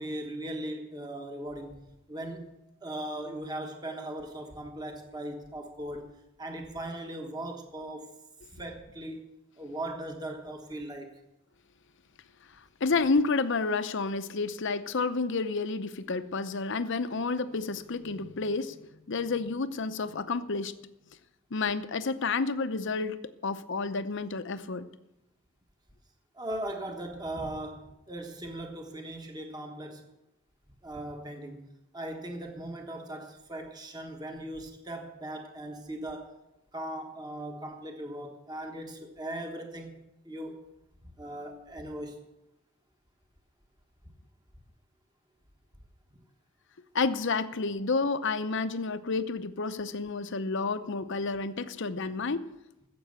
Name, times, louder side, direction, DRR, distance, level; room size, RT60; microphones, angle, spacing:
voice 1, 0.0-6.1 6.4-8.1 8.5-9.2 9.6-11.2 26.3-30.1 30.8-31.7 31.9-36.3 36.7-40.6 41.0-42.2, right 1 dB, 20° right, 3 dB, 1.3 m, -39 dB
voice 2, 12.8-18.8 19.1-20.7 21.5-23.2 23.4-24.9 46.9-52.5, left 4 dB, 55° left, 12 dB, 0.7 m, -30 dB
15.0 x 7.7 x 6.5 m, 0.92 s
head